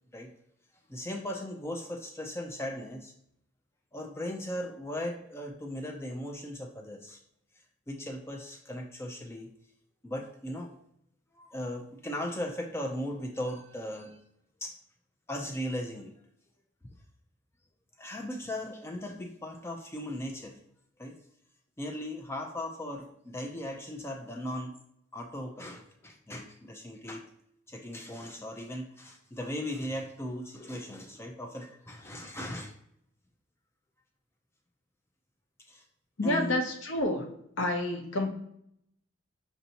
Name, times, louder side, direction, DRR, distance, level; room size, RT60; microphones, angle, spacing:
voice 1, 0.9-3.1 3.9-7.2 7.9-9.5 10.0-10.8 11.3-14.2 14.6-14.7 15.3-16.1 18.0-20.6 21.0-21.2 21.8-24.7 25.1-27.2 27.7-32.7 35.7-35.8 36.2-36.6, left 1 dB, 15° left, 2 dB, 0.3 m, -38 dB
voice 2, 36.2-37.2 37.6-38.3, left 1 dB, 65° left, 3 dB, 0.7 m, -29 dB
5.2 x 2.6 x 2.8 m, 0.74 s
head